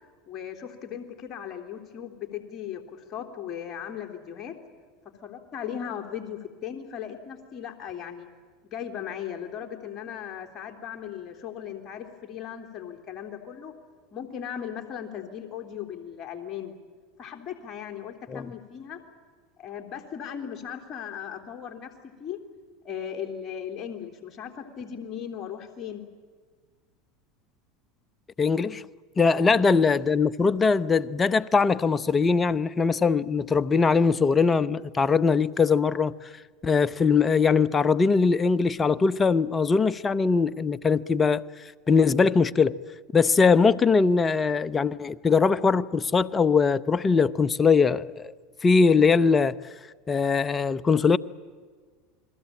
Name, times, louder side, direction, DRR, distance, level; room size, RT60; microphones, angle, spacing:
voice 1, 0.3-4.6 5.2-8.3 8.7-13.8 14.1-16.7 17.2-19.0 19.6-22.4 22.8-26.0 29.3-29.5, left 9 dB, 40° left, 3.6 m, -37 dB
voice 2, 28.4-28.8 29.2-36.1 36.6-41.4 41.9-42.8 43.1-48.3 48.6-49.5 50.1-51.2, left 5 dB, 25° left, 0.9 m, -21 dB
29.0 x 21.0 x 8.8 m
hypercardioid pair, 90°, 0 cm